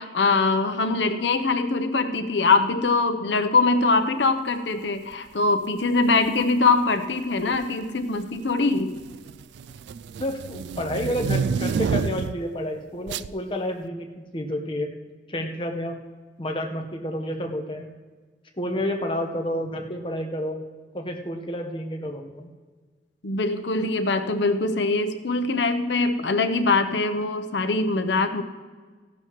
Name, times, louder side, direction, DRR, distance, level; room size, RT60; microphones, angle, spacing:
voice 1, 0.0-8.9 23.2-28.4, left 3 dB, 80° left, 8 dB, 0.8 m, -23 dB
sound 1, 6.1-6.4 7.4-7.9 8.2-12.5 13.1-13.3, right 6 dB, 70° right, 0.3 m, -29 dB
voice 2, 10.2-14.9 15.3-16.0 16.4-17.9 18.5-20.6 20.9-22.5, left 1 dB, 30° left, 3 dB, 1.1 m, -30 dB
15.5 x 11.5 x 3.1 m, 1.4 s
head